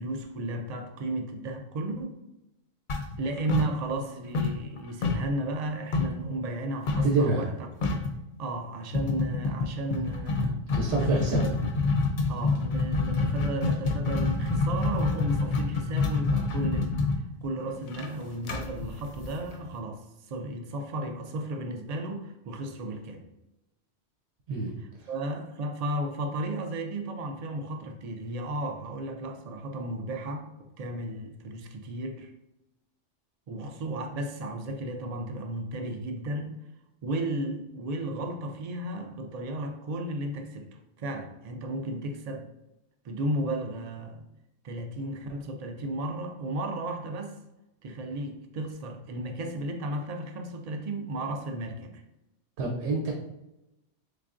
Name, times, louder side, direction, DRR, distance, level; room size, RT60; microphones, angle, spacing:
voice 1, 0.0-2.2 3.2-7.5 8.4-10.6 11.0-11.2 12.3-17.0 17.4-23.2 25.1-32.3 33.5-36.6 37.0-42.5 43.0-44.3 44.6-47.4 47.8-52.0, right 1 dB, 60° right, 5 dB, 0.4 m, -34 dB
sound 1, 2.9-4.1 4.3-6.2 6.9-7.2 7.5-7.6 7.8-8.2 8.9-19.7, left 3 dB, 55° left, 0.6 m, -27 dB
voice 2, 7.0-7.4 10.7-11.5 24.5-24.7 25.0-25.1 52.6-53.1, right 3 dB, 75° right, -1 dB, 0.9 m, -26 dB
4.0 x 3.3 x 2.5 m, 0.92 s
omnidirectional pair, 1.2 m